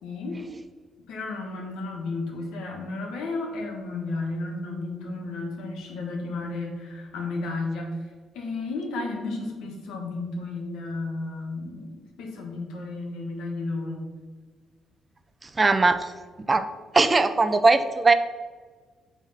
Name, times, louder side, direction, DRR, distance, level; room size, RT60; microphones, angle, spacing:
voice 1, 0.0-0.5 1.1-8.0 8.3-11.9 12.2-14.1, left 3 dB, 85° left, 1 dB, 1.5 m, -33 dB
voice 2, 15.4-16.1 16.4-16.7 16.9-18.1, right 3 dB, 25° right, 10 dB, 0.5 m, -20 dB
7.3 x 3.5 x 5.6 m, 1.4 s
cardioid pair, 90°, 0 cm